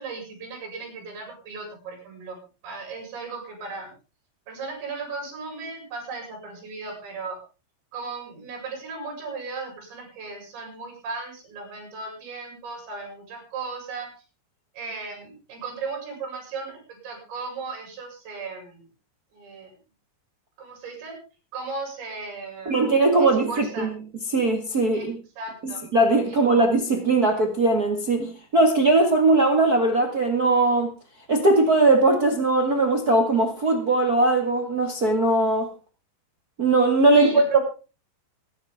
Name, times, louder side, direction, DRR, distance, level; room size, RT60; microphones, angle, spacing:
voice 1, 0.0-2.4 2.6-3.9 4.5-7.4 7.9-14.1 14.7-18.8 19.3-19.7 20.6-21.2 21.5-23.9 24.9-25.0 25.4-25.9 26.3-26.6 37.2-37.6, right 4 dB, 75° right, 7.8 m, -36 dB
voice 2, 22.6-23.9 24.3-25.1 25.6-30.9 31.3-35.7 36.6-37.6, right 2 dB, 55° right, 1.0 m, -20 dB
25.0 x 10.5 x 3.6 m
omnidirectional pair, 5.1 m